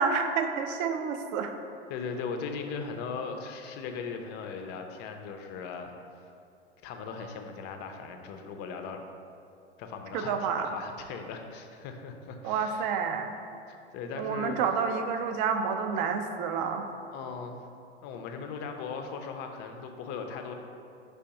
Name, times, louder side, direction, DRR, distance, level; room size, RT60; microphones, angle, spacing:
voice 1, 0.0-1.5 10.1-10.7 12.4-13.3 14.2-16.9, right 6 dB, 40° right, 6 dB, 0.4 m, -29 dB
voice 2, 1.9-6.2 6.8-9.0 9.8-12.9 13.7-14.6 17.1-17.7 18.0-20.5, left 5 dB, 30° left, 5 dB, 0.4 m, -38 dB
5.1 x 3.3 x 2.8 m, 2.5 s
hypercardioid pair, 95°, 34 cm